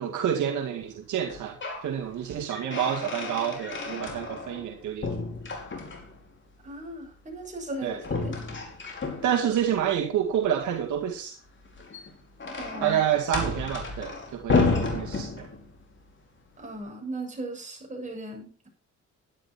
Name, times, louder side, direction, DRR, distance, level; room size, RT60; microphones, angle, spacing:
voice 1, 0.0-1.6 1.8-5.1 7.8-8.0 9.2-11.4 12.8-15.5, right 9 dB, 75° right, 2.3 m, -28 dB
sound 1, 1.2-1.9 2.3-4.7 5.0-6.2 8.0-9.6 11.7-15.8, left 3 dB, 40° left, 4.9 m, -31 dB
voice 2, 6.6-8.4 12.5-13.0 16.6-18.7, right 1 dB, 25° right, 7.3 m, -37 dB
12.5 x 11.5 x 4.4 m
cardioid pair, 90°, 30 cm